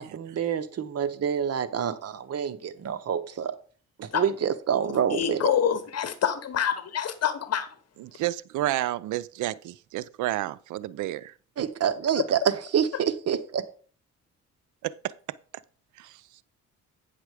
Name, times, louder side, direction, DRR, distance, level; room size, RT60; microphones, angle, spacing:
voice 1, 0.0-3.6 4.0-5.5 11.6-13.6, right 8 dB, 55° right, 1.0 m, -27 dB
voice 2, 5.1-7.7 12.2-12.3, left 9 dB, 55° left, 1.0 m, -26 dB
voice 3, 8.0-11.3 14.8-15.1 16.0-16.2, right 15 dB, 80° right, 0.5 m, -31 dB
9.1 x 6.1 x 4.9 m
cardioid pair, 90°, 30 cm